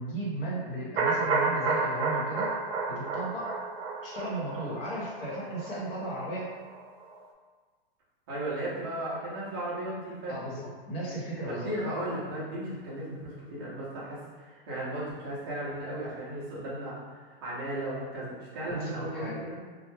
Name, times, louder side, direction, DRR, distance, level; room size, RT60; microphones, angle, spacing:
voice 1, 0.0-2.5 2.9-3.5 4.0-6.5 10.3-12.0 18.7-19.4, right 1 dB, 65° left, -5 dB, 1.0 m, -35 dB
sound 1, 1.0-6.8 7.1-7.2, right 4 dB, 80° right, 0.5 m, -31 dB
voice 2, 8.3-10.4 11.5-19.6, right 1 dB, 25° right, -9 dB, 0.4 m, -35 dB
2.2 x 2.1 x 3.0 m, 1.5 s
supercardioid pair, 175°, 30 cm